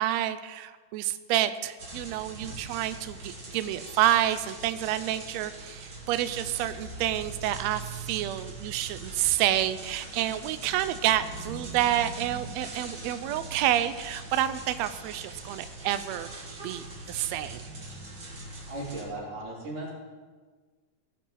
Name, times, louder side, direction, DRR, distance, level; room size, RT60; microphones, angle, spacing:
voice 1, 0.0-17.7, right 12 dB, 85° right, 12 dB, 1.5 m, -29 dB
sound 1, 1.8-19.0, right 3 dB, 35° right, 2.3 m, -42 dB
voice 2, 18.7-19.9, right 2 dB, 65° right, -9 dB, 5.0 m, -36 dB
18.5 x 9.9 x 3.9 m, 1.4 s
omnidirectional pair, 3.7 m